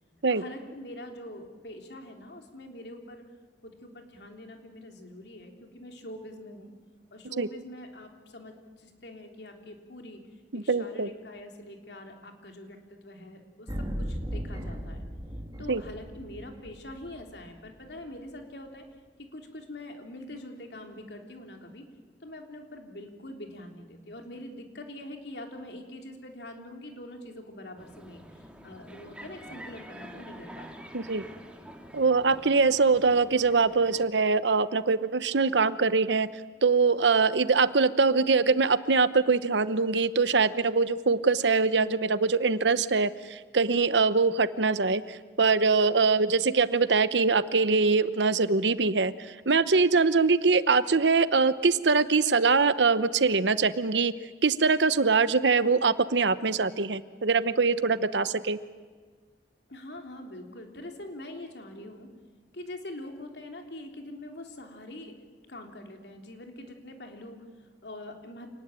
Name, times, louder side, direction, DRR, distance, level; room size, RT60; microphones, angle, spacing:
voice 1, 0.3-3.3 3.6-6.7 7.1-10.2 10.5-15.1 15.6-18.9 19.3-21.9 22.2-31.0 59.7-62.1 62.5-68.5, left 1 dB, 70° left, 3 dB, 3.5 m, -44 dB
voice 2, 10.5-11.1 15.7-15.8 30.9-31.2 31.9-36.3 36.6-49.1 49.5-54.1 54.4-58.6, right 4 dB, 85° right, 14 dB, 1.0 m, -23 dB
sound 1, 13.7-17.7, equal, 25° right, 2.7 m, -37 dB
sound 2, 27.8-34.1, right 1 dB, 5° right, 2.4 m, -47 dB
27.5 x 19.5 x 9.0 m, 1.5 s
head